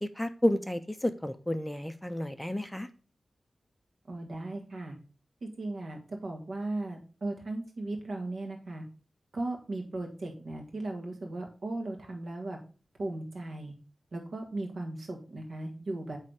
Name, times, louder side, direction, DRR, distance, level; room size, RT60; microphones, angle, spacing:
voice 1, 0.0-2.9, left 1 dB, 5° left, 10 dB, 0.5 m, -31 dB
voice 2, 4.1-4.9 5.4-8.8 9.3-12.6 13.0-13.7 14.1-16.2, right 2 dB, 70° right, 2 dB, 1.6 m, -37 dB
8.5 x 3.3 x 4.8 m, 0.36 s
wide cardioid pair, 130°, 0 cm